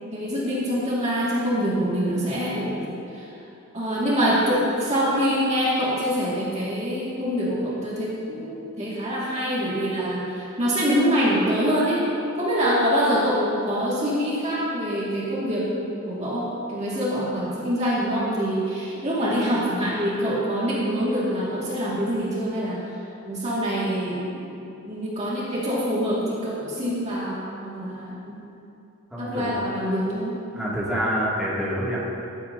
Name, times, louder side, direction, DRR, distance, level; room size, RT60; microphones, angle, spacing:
voice 1, 0.1-2.9 3.1-3.3 3.7-12.0 12.4-22.9 23.3-24.5 24.9-28.4 29.2-30.4, equal, 30° right, -7 dB, 2.0 m, -25 dB
voice 2, 29.1-29.5 30.5-32.0, equal, 5° right, -9 dB, 2.3 m, -26 dB
15.5 x 12.5 x 2.8 m, 2.8 s
head